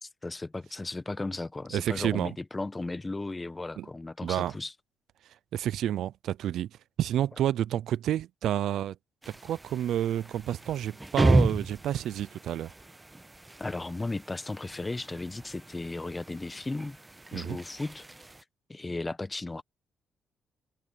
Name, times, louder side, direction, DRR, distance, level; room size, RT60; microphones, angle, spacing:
voice 1, 0.0-4.7 13.6-17.0 17.3-18.0 18.7-19.6, left 2 dB, 25° left, 1.3 m, -35 dB
voice 2, 1.7-2.4 3.8-3.9 4.2-4.6 5.5-6.7 7.0-9.0 9.3-12.7 17.3-17.6, right 11 dB, 75° right, 0.5 m, -29 dB
sound 1, 9.2-18.4, right 2 dB, 15° right, 1.2 m, -32 dB
supercardioid pair, 60°, 0 cm